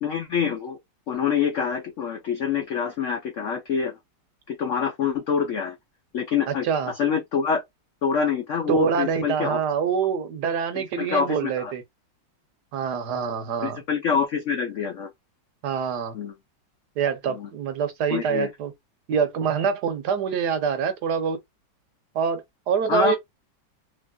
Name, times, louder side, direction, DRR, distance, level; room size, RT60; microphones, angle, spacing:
voice 1, 0.0-0.8 1.1-4.0 4.5-5.8 6.1-7.6 8.0-9.6 10.7-11.7 13.6-15.1 16.1-16.3 17.3-17.5 18.1-18.5 22.9-23.2, left 6 dB, 75° left, 0.7 m, -26 dB
voice 2, 6.5-6.9 8.7-11.8 12.7-13.8 15.6-16.1 17.0-18.7 19.1-21.4 22.1-23.2, right 6 dB, 65° right, 1.2 m, -25 dB
3.2 x 3.0 x 2.2 m
omnidirectional pair, 2.1 m